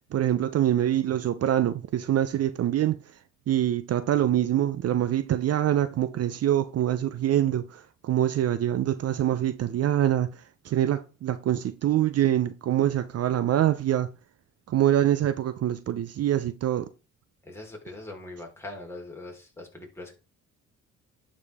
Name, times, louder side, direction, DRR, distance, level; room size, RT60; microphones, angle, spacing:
voice 1, 0.1-3.0 3.5-14.1 14.7-16.9, right 12 dB, 55° right, 0.6 m, -25 dB
voice 2, 17.4-20.1, left 2 dB, 10° left, 3.9 m, -41 dB
11.0 x 5.2 x 3.5 m
cardioid pair, 90°, 30 cm